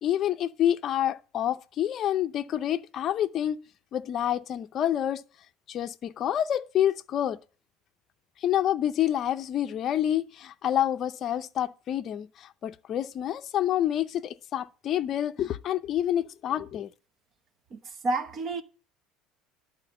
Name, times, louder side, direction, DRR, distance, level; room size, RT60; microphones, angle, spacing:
voice 1, 0.0-3.6 3.9-5.2 5.7-7.4 8.4-16.9, left 11 dB, 35° left, 0.6 m, -28 dB
voice 2, 18.0-18.6, right 2 dB, 30° right, 0.8 m, -29 dB
11.5 x 4.4 x 7.8 m
cardioid pair, 155°, 0 cm